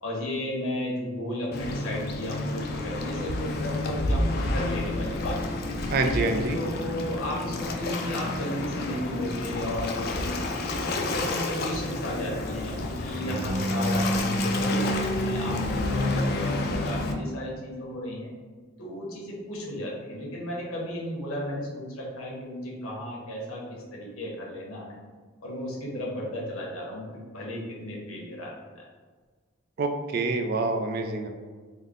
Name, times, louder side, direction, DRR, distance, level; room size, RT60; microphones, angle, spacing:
voice 1, 0.0-5.4 6.5-10.3 10.6-18.3 18.8-25.0 25.4-28.8, left 1 dB, 85° left, -3 dB, 0.9 m, -34 dB
Waves surf, 1.5-17.1, left 1 dB, 45° left, 0.3 m, -29 dB
voice 2, 5.9-6.6 29.8-31.3, right 3 dB, 45° right, 5 dB, 0.3 m, -26 dB
3.6 x 2.1 x 3.6 m, 1.4 s
head